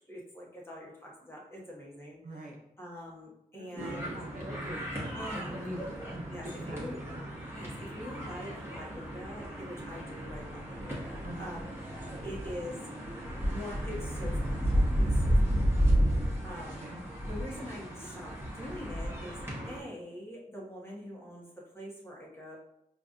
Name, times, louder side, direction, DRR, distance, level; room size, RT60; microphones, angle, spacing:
voice 1, 0.0-2.2 2.8-4.1 5.1-7.0 7.5-11.7 12.2-12.8 13.4-15.8 16.4-16.8 17.2-19.4 19.7-22.6, equal, 15° left, -4 dB, 1.4 m, -44 dB
voice 2, 2.2-2.6 3.5-7.2 11.2-11.6 16.5-17.0, right 1 dB, 65° right, -1 dB, 0.9 m, -44 dB
sound 1, 3.8-19.8, equal, 15° right, 1.5 m, -32 dB
4.6 x 2.7 x 2.5 m, 0.81 s
cardioid pair, 45°, 15 cm